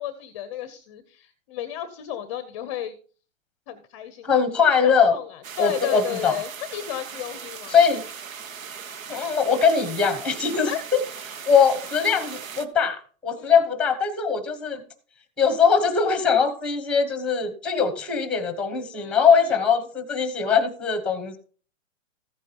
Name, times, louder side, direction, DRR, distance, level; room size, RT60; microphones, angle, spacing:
voice 1, 0.0-3.0 3.7-4.5 4.8-7.8 10.7-10.8 13.4-13.5 18.9-19.5, left 10 dB, 25° left, 11 dB, 0.7 m, -33 dB
voice 2, 4.2-5.1 5.6-6.4 7.7-8.0 9.1-11.0 11.5-14.8 15.4-21.4, left 6 dB, ahead, 10 dB, 1.1 m, -21 dB
sound 1, 5.4-12.7, right 6 dB, 75° right, 1.3 m, -38 dB
14.5 x 9.0 x 2.9 m, 0.40 s
hypercardioid pair, 155°, 40 cm